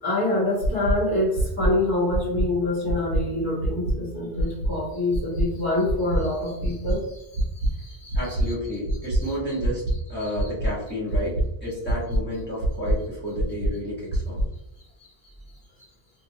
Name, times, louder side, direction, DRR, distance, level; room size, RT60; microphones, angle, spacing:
voice 1, 0.0-8.1 10.2-10.3, left 2 dB, 20° right, -10 dB, 0.9 m, -26 dB
sound 1, 0.6-0.9 1.3-1.7 2.1-2.4 2.8-3.2 3.6-3.9 4.3-4.7 5.1-5.4 5.8-6.2 6.6-6.9 7.3-7.7 8.1-8.4 8.8-9.2 9.6-9.9 10.3-10.7 11.1-11.4 11.8-12.2 12.6-12.9 13.3-13.7 14.1-14.4, right 1 dB, 75° right, 0.9 m, -23 dB
voice 2, 8.1-9.8 10.1-14.4, equal, 10° left, -7 dB, 1.1 m, -31 dB
2.8 x 2.4 x 2.7 m, 0.88 s
omnidirectional pair, 1.1 m